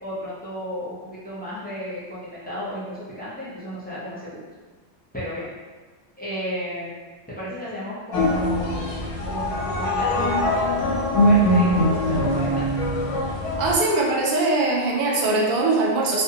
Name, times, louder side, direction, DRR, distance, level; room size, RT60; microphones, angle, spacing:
voice 1, 0.0-4.4 5.1-5.5 6.2-6.9 7.3-8.9 9.3-10.6 11.2-12.7, left 1 dB, 15° left, -9 dB, 0.4 m, -33 dB
sound 1, 8.1-13.7, equal, 85° left, 0.9 m, -22 dB
voice 2, 13.6-16.2, right 2 dB, 55° right, -3 dB, 0.6 m, -21 dB
2.5 x 2.2 x 2.7 m, 1.4 s
omnidirectional pair, 1.2 m